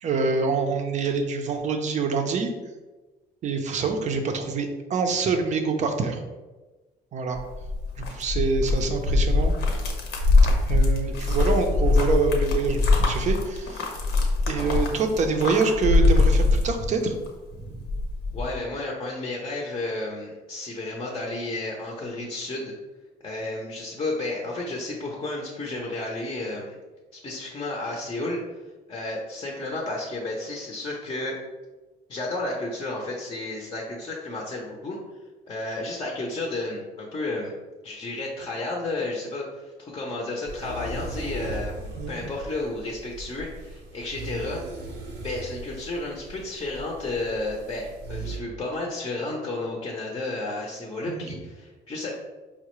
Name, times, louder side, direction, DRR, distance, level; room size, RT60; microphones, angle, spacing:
voice 1, 0.0-2.5 3.4-6.2 7.1-7.4 8.0-9.5 10.7-13.9 14.5-17.1 17.6-17.8 42.0-42.2 51.0-51.3, right 4 dB, 45° right, 5 dB, 0.5 m, -26 dB
sound 1, 7.3-17.3 17.6-18.5, left 3 dB, 80° left, 0.7 m, -22 dB
voice 2, 18.3-22.7 23.2-26.8 27.1-28.4 28.9-31.4 32.1-35.0 35.5-37.6 37.8-44.6 45.2-52.1, left 2 dB, 25° left, -1 dB, 0.6 m, -32 dB
sound 2, 40.4-48.4, right 2 dB, 85° right, 0.7 m, -38 dB
4.7 x 2.1 x 3.0 m, 1.2 s
cardioid pair, 110°, 17 cm